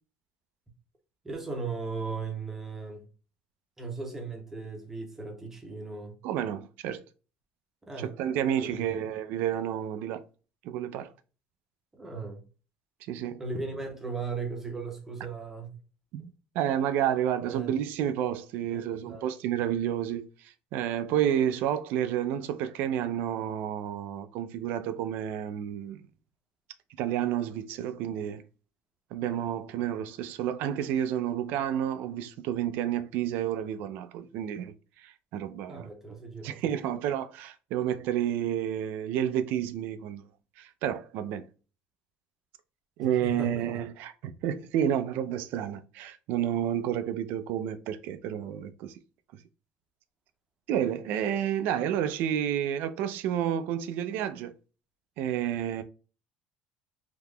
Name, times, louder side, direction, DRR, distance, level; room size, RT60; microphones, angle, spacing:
voice 1, 1.2-3.0 3.8-6.2 7.9-8.1 8.6-9.0 11.9-12.4 13.4-15.7 17.4-17.7 18.7-19.3 29.8-29.9 35.7-37.1 43.0-43.8, right 4 dB, 10° right, 0.7 m, -37 dB
voice 2, 6.2-7.0 8.0-10.2 10.6-11.1 13.1-13.4 16.1-26.1 27.0-28.4 29.1-35.9 36.4-40.2 40.6-41.4 43.0-49.0 50.7-54.5 55.2-55.8, right 10 dB, 60° right, 0.4 m, -30 dB
3.6 x 2.8 x 2.2 m
cardioid pair, 175°, 4 cm